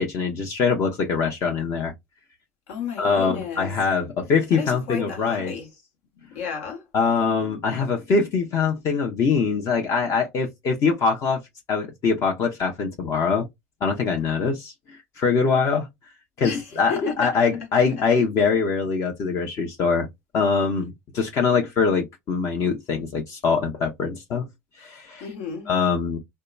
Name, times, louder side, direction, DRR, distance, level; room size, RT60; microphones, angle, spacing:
voice 1, 0.0-1.9 3.0-5.5 6.9-11.4 11.7-13.5 13.8-15.9 16.4-20.1 20.3-24.5 24.8-25.2 25.7-26.2, left 5 dB, 50° left, 0.7 m, -23 dB
voice 2, 2.7-3.7 4.5-5.7 6.3-6.9 16.4-17.9 25.2-25.7, left 6 dB, 80° left, 1.2 m, -33 dB
2.8 x 2.2 x 2.3 m
supercardioid pair, 95°, 7 cm